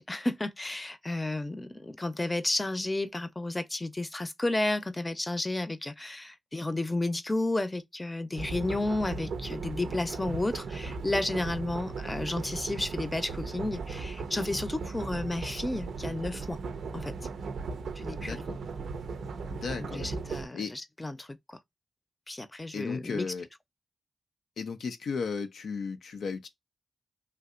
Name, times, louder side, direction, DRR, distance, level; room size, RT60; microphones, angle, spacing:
voice 1, 0.0-16.6 16.9-17.1 18.0-18.4 19.8-21.6 22.3-23.3, left 2 dB, 25° left, 0.6 m, -32 dB
sound 1, 8.3-20.5, right 4 dB, 80° right, 0.4 m, -37 dB
voice 2, 18.2-18.6 19.5-20.8 22.7-23.4 24.6-26.5, left 5 dB, 80° left, 0.4 m, -35 dB
3.3 x 2.7 x 2.4 m
supercardioid pair, 40°, 0 cm